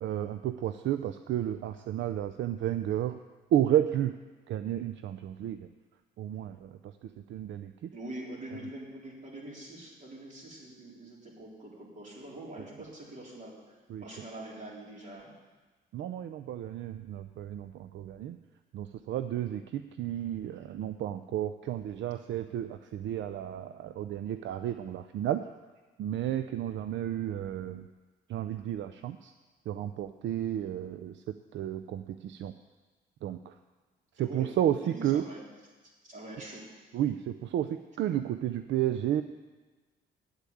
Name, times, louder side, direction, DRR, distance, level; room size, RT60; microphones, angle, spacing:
voice 1, 0.0-3.2 3.5-4.2 4.5-5.7 6.2-7.9 8.5-8.7 13.9-14.1 15.9-18.4 18.7-25.4 26.0-27.9 28.3-29.3 29.7-32.5 33.2-33.6 34.1-35.3 36.9-39.2, right 11 dB, 70° right, 10 dB, 0.5 m, -32 dB
voice 2, 7.9-13.5 14.0-15.3 34.2-34.5 34.8-35.4 36.0-36.6, right 1 dB, 40° right, -3 dB, 3.8 m, -44 dB
8.3 x 8.3 x 8.6 m, 1.3 s
cardioid pair, 90°, 20 cm